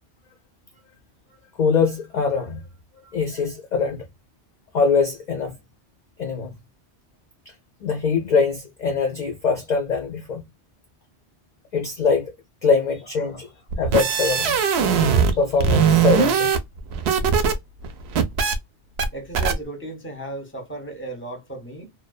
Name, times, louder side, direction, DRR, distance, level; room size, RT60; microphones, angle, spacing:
voice 1, 1.6-2.6 3.1-4.1 4.7-5.6 6.2-6.5 7.8-10.4 11.7-12.3 12.6-13.5 13.8-14.6 15.4-16.5, left 5 dB, 50° left, 0.6 m, -22 dB
sound 1, 13.7-15.3 15.6-17.5 17.8-18.5 19.0-19.1 19.3-19.5, right 6 dB, 70° right, 0.8 m, -20 dB
voice 2, 19.1-21.9, right 2 dB, 10° left, 0.8 m, -35 dB
2.4 x 2.2 x 2.3 m
omnidirectional pair, 1.2 m